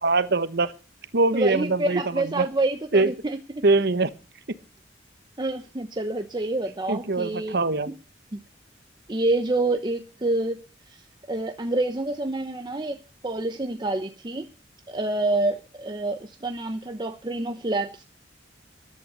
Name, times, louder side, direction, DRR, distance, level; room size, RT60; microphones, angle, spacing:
voice 1, 0.0-0.7 1.1-2.5 2.9-3.1 3.6-4.1 6.9-7.9, right 3 dB, 60° right, 13 dB, 1.2 m, -23 dB
voice 2, 1.3-3.1 5.4-7.6 8.3-8.4 9.1-10.6 10.9-11.0 11.3-13.0 13.2-14.5 14.9-18.0, right 2 dB, 25° right, 6 dB, 0.9 m, -27 dB
14.0 x 11.0 x 6.9 m, 0.36 s
head